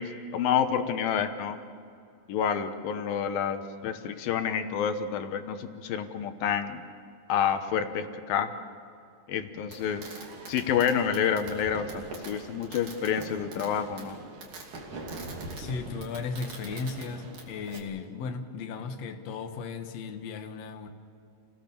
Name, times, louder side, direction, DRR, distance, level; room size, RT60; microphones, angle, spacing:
voice 1, 0.0-1.6 2.3-6.8 7.3-8.5 9.3-10.1 10.5-14.2, left 8 dB, 85° left, 8 dB, 2.9 m, -28 dB
Fireworks, 9.7-17.8, right 3 dB, 60° right, 4.2 m, -42 dB
voice 2, 15.6-20.9, left 4 dB, 55° left, 5 dB, 2.3 m, -36 dB
29.0 x 18.0 x 7.0 m, 2.4 s
omnidirectional pair, 4.0 m